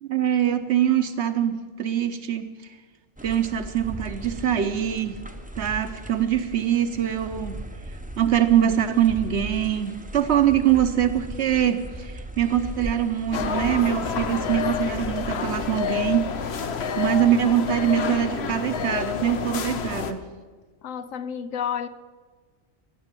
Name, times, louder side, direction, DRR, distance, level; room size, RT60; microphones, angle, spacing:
voice 1, 0.0-2.5 3.2-5.2 5.6-7.6 8.2-16.3 16.6-16.7 17.0-20.2, right 10 dB, 60° right, 1.1 m, -23 dB
sound 1, 3.2-16.4, right 1 dB, 10° right, 0.7 m, -38 dB
sound 2, 13.3-20.1, left 6 dB, 60° left, 1.0 m, -28 dB
voice 2, 20.8-21.9, left 8 dB, 80° left, 1.1 m, -30 dB
16.0 x 6.5 x 8.9 m
omnidirectional pair, 1.3 m